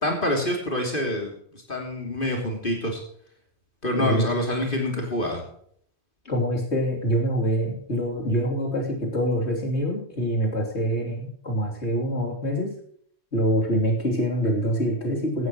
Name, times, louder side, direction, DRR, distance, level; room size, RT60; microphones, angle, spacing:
voice 1, 0.0-3.0 3.8-5.4, left 1 dB, 50° left, 1 dB, 3.3 m, -26 dB
voice 2, 3.9-4.3 6.3-12.7 13.3-15.5, equal, 85° left, -1 dB, 3.6 m, -25 dB
15.5 x 12.0 x 3.1 m, 0.64 s
omnidirectional pair, 1.1 m